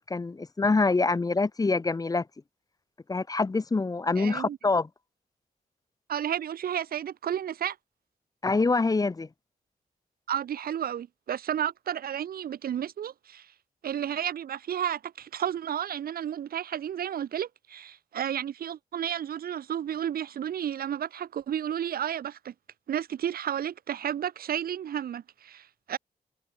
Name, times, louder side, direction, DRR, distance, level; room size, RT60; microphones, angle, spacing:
voice 1, 0.0-2.3 3.1-4.9 8.4-9.3, left 3 dB, 25° left, 0.7 m, -25 dB
voice 2, 4.2-4.6 6.1-7.8 10.3-13.5 13.8-22.5 22.9-26.0, right 9 dB, 80° right, 0.5 m, -32 dB
wide cardioid pair, 140°, 15 cm